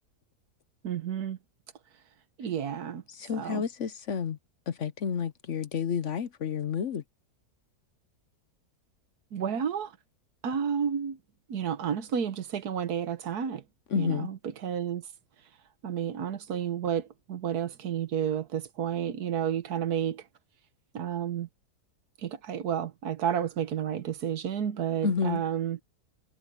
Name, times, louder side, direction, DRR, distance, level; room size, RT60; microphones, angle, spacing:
voice 1, 0.8-1.4 2.4-3.0 3.3-3.6 9.3-9.9 10.4-11.2 11.5-13.6 13.9-15.1 15.8-20.3 20.9-21.5 22.2-25.8, right 8 dB, 75° right, 1.6 m, -31 dB
voice 2, 3.1-4.4 4.7-7.0 13.9-14.3 25.0-25.4, left 7 dB, 55° left, 1.0 m, -30 dB
omnidirectional pair, 1.7 m